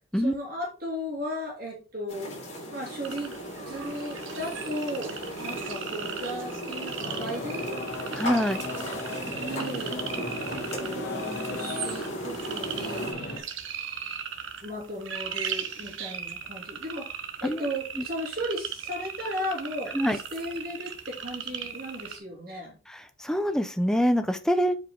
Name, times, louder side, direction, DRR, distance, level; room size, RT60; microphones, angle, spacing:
voice 1, 0.1-2.3 2.7-7.8 9.4-10.0 10.4-13.3 14.6-17.1 17.4-22.8, equal, 45° right, -2 dB, 2.7 m, -36 dB
sound 1, 2.1-13.1, equal, 35° left, 3.5 m, -36 dB
sound 2, 3.0-22.2, right 7 dB, 70° right, 0.9 m, -38 dB
sound 3, 7.0-13.4, left 3 dB, 50° left, 1.8 m, -38 dB
voice 2, 8.1-8.6 17.4-17.7 18.0-18.1 19.9-20.2 22.9-24.7, equal, 5° left, 8 dB, 0.5 m, -25 dB
7.4 x 5.1 x 3.7 m, 0.34 s
head